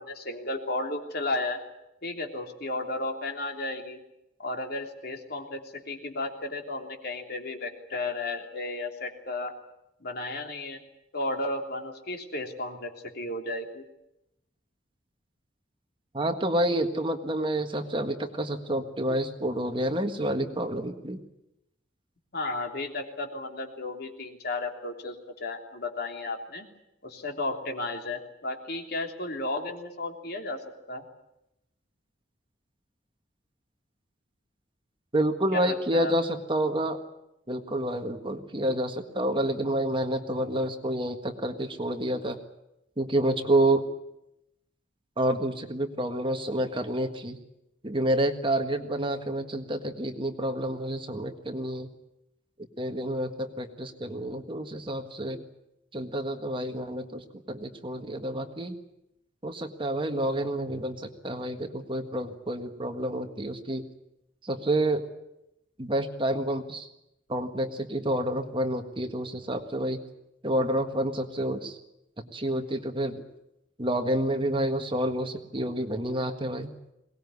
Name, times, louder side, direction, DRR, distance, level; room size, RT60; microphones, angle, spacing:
voice 1, 0.0-1.6 2.0-4.0 4.4-9.6 10.0-10.8 11.1-13.8 22.3-26.7 27.0-30.6 30.9-31.0 35.5-36.1, left 2 dB, 55° left, 3 dB, 3.3 m, -33 dB
voice 2, 16.1-21.2 35.1-37.0 37.5-42.4 43.0-43.8 45.2-47.4 47.8-51.9 52.8-55.4 55.9-58.8 59.4-63.9 64.4-65.1 65.8-66.9 67.3-70.0 70.4-71.8 72.3-73.2 73.8-76.7, right 1 dB, 25° right, 6 dB, 1.6 m, -29 dB
22.5 x 19.0 x 9.6 m, 0.86 s
head